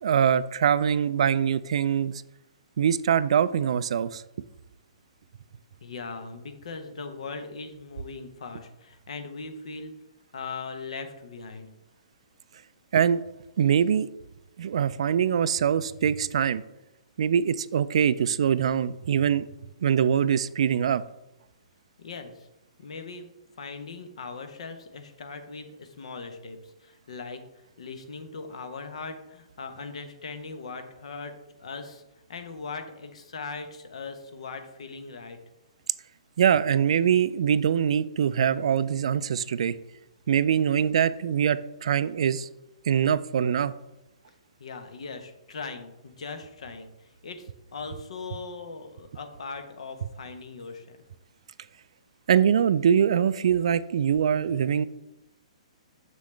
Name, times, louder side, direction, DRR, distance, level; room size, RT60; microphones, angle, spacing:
voice 1, 0.0-2.1 2.8-4.2 12.9-13.2 13.6-14.1 14.6-16.6 17.2-19.5 19.8-21.0 36.4-39.8 40.3-42.5 42.9-43.7 52.3-54.9, right 8 dB, 60° right, 16 dB, 0.3 m, -23 dB
voice 2, 5.8-9.9 10.3-11.7 22.0-22.5 22.8-23.3 23.6-27.4 27.8-32.0 32.3-35.4 44.6-46.9 47.2-51.0, left 4 dB, 65° left, 7 dB, 1.0 m, -39 dB
7.1 x 6.3 x 3.3 m, 0.92 s
figure-of-eight pair, 120°, 4 cm